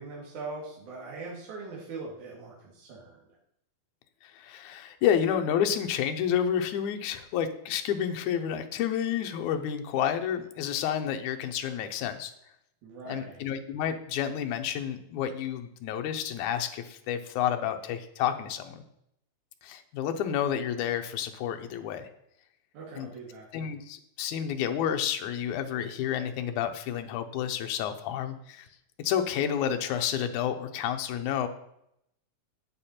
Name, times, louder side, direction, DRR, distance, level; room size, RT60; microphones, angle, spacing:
voice 1, 0.0-3.2 12.8-13.4 22.7-23.5, right 3 dB, 75° right, -5 dB, 3.3 m, -41 dB
voice 2, 4.2-12.3 13.1-18.8 19.6-22.1 23.0-23.1 23.5-28.7 29.0-31.5, left 9 dB, 80° left, 6 dB, 2.3 m, -30 dB
8.9 x 8.4 x 4.3 m, 0.75 s
omnidirectional pair, 3.5 m